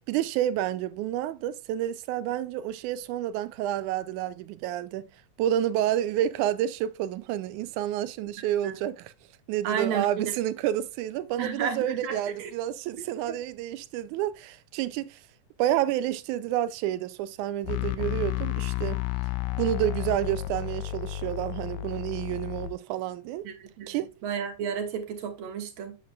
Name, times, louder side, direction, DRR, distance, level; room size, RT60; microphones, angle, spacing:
voice 1, 0.0-5.1 5.4-9.1 9.5-15.2 15.6-19.0 19.6-23.5 23.9-24.1, right 12 dB, 85° right, 2.0 m, -29 dB
voice 2, 8.4-8.8 9.6-10.3 11.4-12.5 13.3-13.4 23.4-24.0 24.2-26.0, right 7 dB, 65° right, 2.0 m, -32 dB
sound 1, 17.6-22.7, left 15 dB, 80° left, 1.9 m, -32 dB
8.6 x 7.4 x 2.3 m
omnidirectional pair, 3.4 m